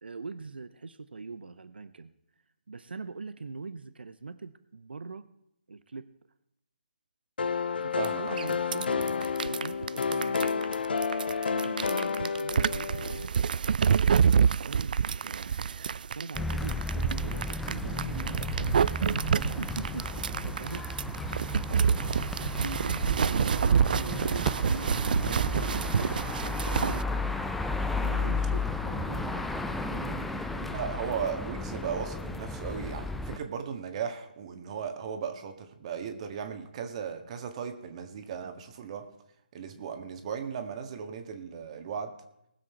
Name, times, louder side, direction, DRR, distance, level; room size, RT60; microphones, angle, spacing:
voice 1, 0.0-2.1 2.7-5.3 5.7-6.1 7.8-9.1 9.4-10.7 11.5-13.3 13.9-15.6 16.0-19.0 19.6-21.3 21.7-22.1 22.6-26.0 26.2-27.4 28.0-31.0, right 4 dB, 80° right, 13 dB, 0.8 m, -42 dB
sound 1, 7.4-13.3, left 5 dB, 70° left, 0.8 m, -30 dB
voice 2, 8.0-8.5 22.0-22.3 30.7-39.1 39.5-42.1, right 7 dB, 40° right, 6 dB, 1.7 m, -36 dB
sound 2, 8.0-8.1 8.4-27.0, right 7 dB, 60° right, 0.3 m, -27 dB
sound 3, 16.3-33.4, left 2 dB, 5° left, 0.5 m, -34 dB
20.0 x 7.6 x 4.5 m, 0.79 s
hypercardioid pair, 150°, 5 cm